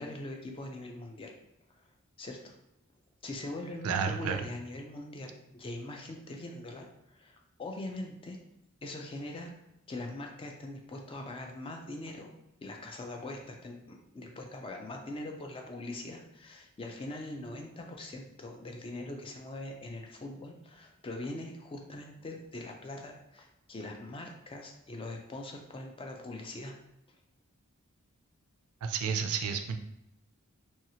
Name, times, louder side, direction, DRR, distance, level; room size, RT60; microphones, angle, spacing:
voice 1, 0.0-1.3 1.7-1.8 2.2-2.5 3.2-8.4 8.8-9.5 9.9-12.3 12.6-26.7, left 2 dB, 25° left, 2 dB, 0.3 m, -42 dB
voice 2, 3.8-4.4 28.8-29.8, right 6 dB, 75° right, 6 dB, 0.3 m, -31 dB
2.8 x 2.3 x 2.8 m, 0.84 s
head